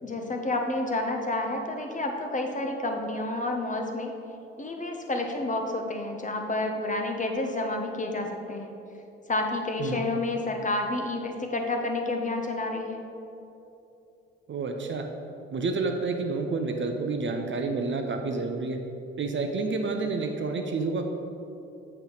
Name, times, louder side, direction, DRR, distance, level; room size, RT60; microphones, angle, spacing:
voice 1, 0.0-4.1 4.6-8.7 9.3-13.0, left 2 dB, 25° left, 3 dB, 0.9 m, -30 dB
voice 2, 14.5-15.1 15.5-18.8 19.2-21.0, right 3 dB, 35° right, 4 dB, 0.7 m, -29 dB
8.0 x 4.4 x 4.0 m, 2.9 s
figure-of-eight pair, 40°, 31 cm